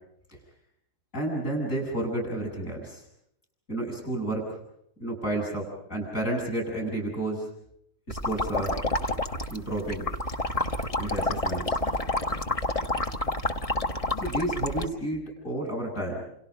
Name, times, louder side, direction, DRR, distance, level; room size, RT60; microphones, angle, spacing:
voice 1, 1.1-3.0 3.7-4.6 5.0-7.5 8.1-8.8 9.5-10.1 11.0-11.8 14.2-16.2, right 1 dB, 40° left, 2 dB, 8.3 m, -31 dB
sound 1, 8.1-14.9, left 2 dB, 20° left, 1.0 m, -29 dB
29.5 x 29.0 x 5.2 m, 0.73 s
omnidirectional pair, 2.2 m